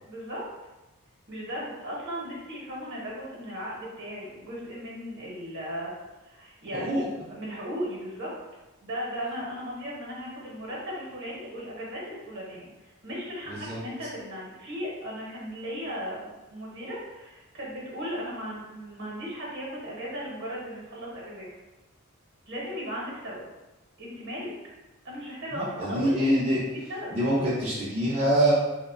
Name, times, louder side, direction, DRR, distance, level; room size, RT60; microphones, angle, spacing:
voice 1, 0.0-0.4 1.3-5.9 6.2-8.3 8.8-21.5 22.5-23.4 24.0-24.5 25.0-26.2 26.7-27.1, equal, 55° right, -4 dB, 0.8 m, -36 dB
voice 2, 6.7-7.1 13.5-13.8 25.5-26.6 27.1-28.5, right 1 dB, 30° right, -9 dB, 0.4 m, -25 dB
2.5 x 2.1 x 2.4 m, 1.1 s
head